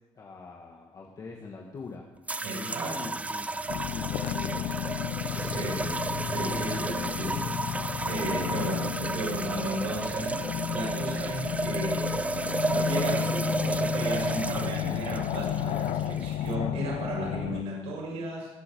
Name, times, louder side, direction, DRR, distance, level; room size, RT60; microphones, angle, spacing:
voice 1, 0.2-2.1 2.6-3.6 3.9-4.8 5.3-5.8, left 4 dB, 35° left, 0 dB, 2.0 m, -43 dB
sound 1, 2.3-16.5, right 3 dB, 15° right, 0.5 m, -33 dB
voice 2, 2.4-3.1 5.3-7.4 8.0-10.3 10.7-12.1 12.7-18.5, right 2 dB, 75° right, -5 dB, 6.8 m, -34 dB
sound 2, 3.7-17.6, left 10 dB, 85° left, 0.7 m, -32 dB
22.0 x 8.4 x 7.1 m, 1.1 s
cardioid pair, 145°, 11 cm